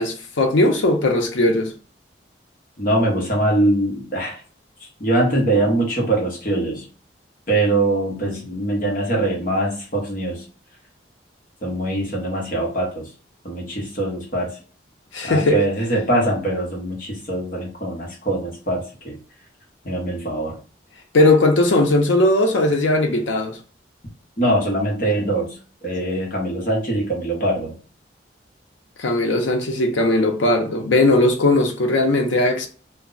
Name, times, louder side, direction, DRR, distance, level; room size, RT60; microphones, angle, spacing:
voice 1, 0.0-1.7 15.1-15.6 21.1-23.6 29.0-32.7, left 2 dB, 80° left, 0.6 m, -18 dB
voice 2, 2.8-4.4 5.0-6.9 7.5-10.4 11.6-13.1 13.4-14.5 15.2-19.2 19.8-20.6 24.4-25.6 25.8-27.7, right 1 dB, 45° left, 0.9 m, -22 dB
2.2 x 2.0 x 3.7 m
head